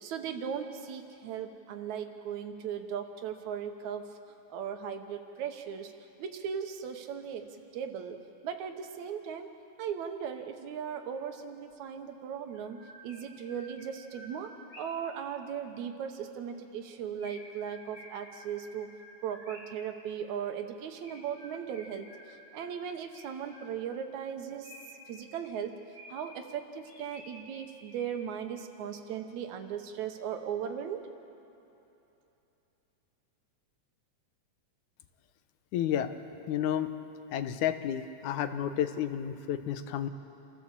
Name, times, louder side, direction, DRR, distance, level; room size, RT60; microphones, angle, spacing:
voice 1, 0.0-4.0 4.5-5.9 6.2-7.5 7.7-9.5 9.8-14.5 14.8-18.9 19.2-22.1 22.5-24.7 25.1-25.7 26.1-31.1, right 8 dB, 80° right, 6 dB, 2.4 m, -37 dB
Chirp tweet, 11.7-11.8 12.5-15.1 17.2-19.9 21.0-22.6 23.1-24.0 24.6-26.4 26.8-28.4, left 1 dB, 45° left, 5.6 m, -52 dB
voice 2, 35.7-36.1 36.5-36.9 37.3-40.1, left 10 dB, 90° left, 10 dB, 2.3 m, -31 dB
28.0 x 14.0 x 7.4 m, 3.0 s
omnidirectional pair, 3.3 m